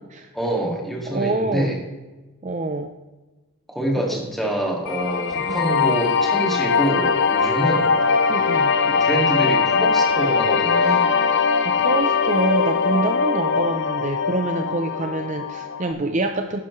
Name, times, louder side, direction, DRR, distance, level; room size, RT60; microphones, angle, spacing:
voice 1, 0.3-1.8 3.7-7.9 8.8-11.2, right 1 dB, ahead, -1 dB, 2.1 m, -26 dB
voice 2, 1.1-1.7 2.4-2.9 4.0-4.2 5.5-5.7 8.3-8.7 11.6-16.6, right 2 dB, 35° right, 6 dB, 0.5 m, -26 dB
sound 1, 4.9-15.9, left 5 dB, 55° left, 0.6 m, -21 dB
11.5 x 10.0 x 3.2 m, 1.2 s
head